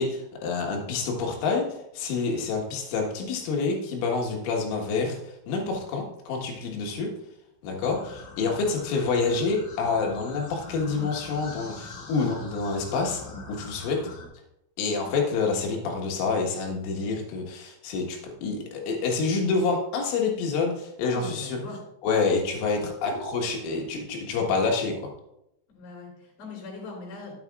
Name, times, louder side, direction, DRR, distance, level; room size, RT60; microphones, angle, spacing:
voice 1, 0.0-1.7 1.9-7.1 7.6-13.2 13.5-14.0 14.8-21.6 22.0-24.9, left 4 dB, 90° left, 0 dB, 4.0 m, -27 dB
sound 1, 7.9-14.2, left 3 dB, 70° left, 1.6 m, -43 dB
voice 2, 21.1-21.8 23.0-23.1 25.7-27.4, left 4 dB, 45° left, -2 dB, 4.6 m, -41 dB
13.0 x 8.3 x 2.4 m, 0.83 s
omnidirectional pair, 5.5 m